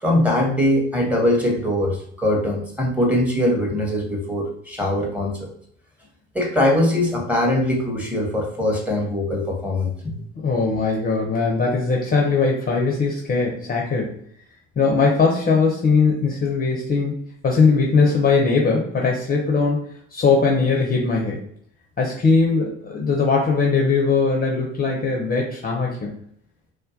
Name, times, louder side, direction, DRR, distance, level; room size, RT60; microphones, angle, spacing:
voice 1, 0.0-5.5 6.3-10.2 22.5-22.6, left 1 dB, 5° right, -1 dB, 0.8 m, -21 dB
voice 2, 10.4-14.2 14.8-17.1 17.4-21.4 22.0-26.1, left 4 dB, 25° left, -1 dB, 0.5 m, -20 dB
2.2 x 2.2 x 2.6 m, 0.67 s
hypercardioid pair, 65°, 35 cm